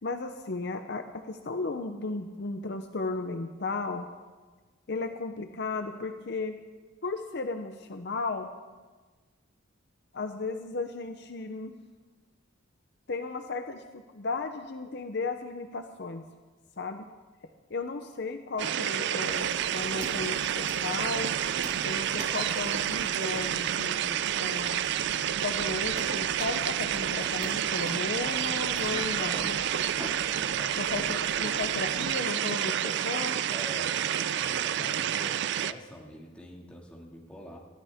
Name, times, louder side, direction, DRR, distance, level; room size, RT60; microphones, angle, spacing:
voice 1, 0.0-4.1 4.9-6.6 7.0-8.5 10.1-11.8 13.1-13.8 14.1-16.3 16.8-17.1 17.7-21.4 21.8-24.8 25.4-29.9 30.8-33.4, left 3 dB, 55° left, 7 dB, 0.7 m, -35 dB
sound 1, 18.6-35.7, right 10 dB, 55° right, 0.4 m, -29 dB
sound 2, 19.2-32.0, right 1 dB, 20° right, 1.8 m, -46 dB
voice 2, 28.9-29.6 30.4-30.8 33.5-34.0 34.4-37.6, equal, 5° left, -3 dB, 2.1 m, -45 dB
19.0 x 14.0 x 3.6 m, 1.3 s
head